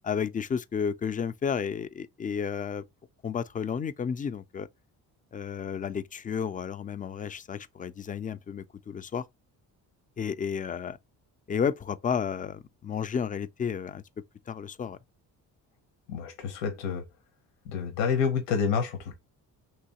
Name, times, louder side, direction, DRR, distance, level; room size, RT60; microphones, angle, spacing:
voice 1, 0.0-2.8 3.2-4.7 5.3-9.2 10.2-11.0 11.5-14.0 14.5-15.0, left 7 dB, 20° left, 0.3 m, -32 dB
voice 2, 16.1-17.0 17.7-19.1, left 6 dB, 90° left, 0.9 m, -28 dB
3.0 x 2.8 x 2.8 m
supercardioid pair, 65°, 41 cm